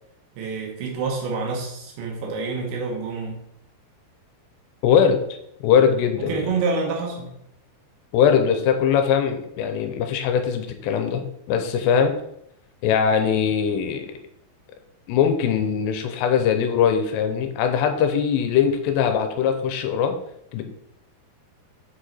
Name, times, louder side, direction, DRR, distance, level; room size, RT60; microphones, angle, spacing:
voice 1, 0.4-3.4 6.2-7.4, right 4 dB, 85° right, 0 dB, 3.2 m, -27 dB
voice 2, 4.8-5.2 5.6-6.5 8.1-12.1 12.8-14.1 15.1-20.2 20.5-20.6, left 7 dB, 85° left, 6 dB, 2.9 m, -21 dB
7.1 x 4.9 x 4.4 m, 0.77 s
omnidirectional pair, 5.0 m